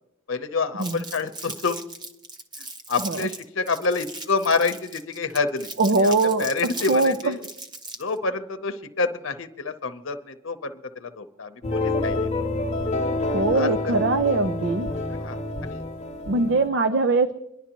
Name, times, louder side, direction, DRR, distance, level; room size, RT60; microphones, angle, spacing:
voice 1, 0.3-1.8 2.9-5.7 6.0-7.4 8.0-12.5 13.3-13.9 15.1-15.8, left 4 dB, 80° left, 8 dB, 0.8 m, -28 dB
Crumpling crinkling, 0.8-8.2, right 2 dB, 20° right, 0.9 m, -38 dB
voice 2, 5.8-6.5 6.9-7.3 13.3-14.9 16.3-17.4, right 3 dB, 60° right, 9 dB, 0.5 m, -21 dB
sound 1, 11.6-16.7, left 2 dB, 35° left, 0.9 m, -27 dB
24.0 x 11.0 x 3.0 m, 0.83 s
head